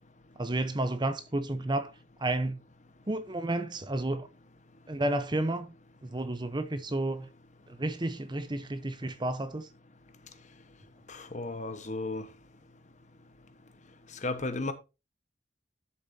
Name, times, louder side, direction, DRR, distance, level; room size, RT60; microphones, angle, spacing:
voice 1, 0.4-1.9 2.2-2.6 3.1-4.3 4.9-5.7 6.0-7.3 7.7-9.7, right 1 dB, 25° right, 0.8 m, -31 dB
voice 2, 11.1-12.3 14.2-14.7, left 2 dB, 40° left, 1.3 m, -34 dB
12.0 x 7.0 x 2.8 m
head